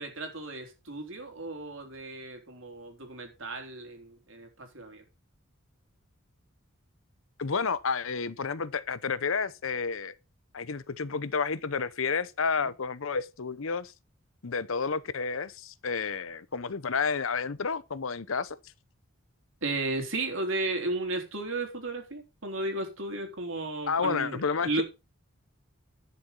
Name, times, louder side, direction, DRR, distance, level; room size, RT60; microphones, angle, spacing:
voice 1, 0.0-5.0 12.6-12.7 19.6-24.8, right 2 dB, 65° right, 3.6 m, -34 dB
voice 2, 7.4-10.1 10.5-13.9 14.4-18.6 23.9-24.8, left 5 dB, 70° left, 0.8 m, -30 dB
11.0 x 6.9 x 5.3 m
head